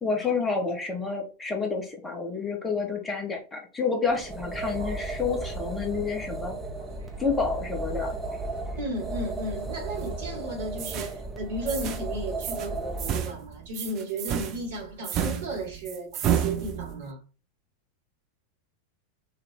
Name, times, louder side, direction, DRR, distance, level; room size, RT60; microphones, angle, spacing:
voice 1, 0.0-6.5 7.2-8.2, left 4 dB, 15° left, 1.1 m, -29 dB
sound 1, 4.1-13.2, right 3 dB, 5° right, 0.8 m, -35 dB
sound 2, 4.6-11.1, left 4 dB, 80° right, 1.2 m, -46 dB
voice 2, 8.7-17.2, right 1 dB, 55° right, 1.3 m, -34 dB
sound 3, 9.9-10.4 10.8-11.1 11.7-12.1 12.4-12.7 13.0-17.1, right 9 dB, 35° right, 0.4 m, -31 dB
2.9 x 2.3 x 3.5 m
figure-of-eight pair, 90°, 0 cm